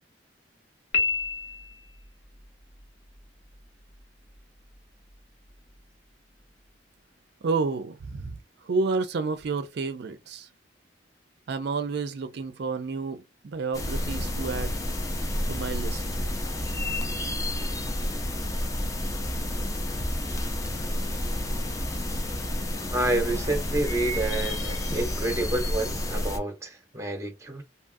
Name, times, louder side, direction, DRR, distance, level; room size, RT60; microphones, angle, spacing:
Piano, 0.9-2.0, left 5 dB, 75° left, 1.0 m, -28 dB
voice 1, 7.4-10.5 11.5-14.8 15.5-16.0, right 4 dB, 65° right, 0.4 m, -30 dB
sound 1, 13.7-26.4, left 1 dB, 20° left, 0.5 m, -30 dB
voice 2, 22.9-27.6, right 2 dB, 15° right, 0.8 m, -29 dB
2.8 x 2.3 x 2.5 m
head